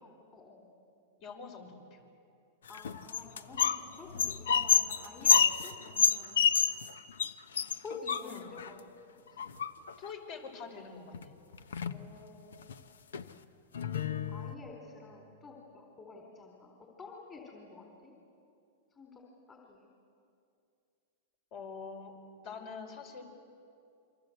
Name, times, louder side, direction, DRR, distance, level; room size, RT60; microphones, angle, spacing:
voice 1, 0.0-0.7 2.7-6.4 7.8-8.9 9.3-9.4 11.8-12.6 14.3-18.1 18.9-19.9, left 3 dB, 25° left, 1 dB, 4.1 m, -49 dB
voice 2, 1.2-2.0 8.2-8.4 10.0-11.3 21.5-22.1 22.4-23.2, left 5 dB, 50° left, 4 dB, 5.5 m, -45 dB
sound 1, 2.7-3.8 4.1-6.9 7.2-7.3 7.6-8.7 9.4-10.0 11.1-11.2 11.5-12.0 12.5-12.7 13.1-13.2 13.7-14.6, left 7 dB, 85° left, 1.0 m, -28 dB
28.0 x 25.0 x 8.0 m, 2.5 s
hypercardioid pair, 120°, 0 cm